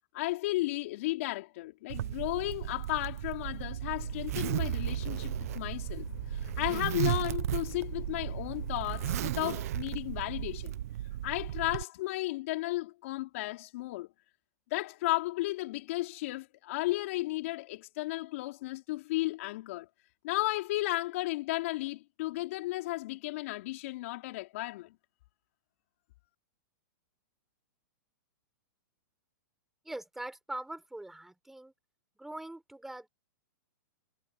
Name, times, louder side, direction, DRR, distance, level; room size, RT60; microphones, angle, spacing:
voice 1, 0.1-10.8 11.2-14.1 14.7-19.9 20.2-25.0, left 19 dB, 45° left, 5.1 m, -34 dB
Zipper (clothing), 1.9-11.8, right 13 dB, 50° right, 1.2 m, -35 dB
sound 1, 3.9-9.4, left 9 dB, 85° left, 6.3 m, -47 dB
voice 2, 29.8-31.7 32.2-33.1, right 1 dB, 5° right, 6.2 m, -42 dB
hypercardioid pair, 170°, 10 cm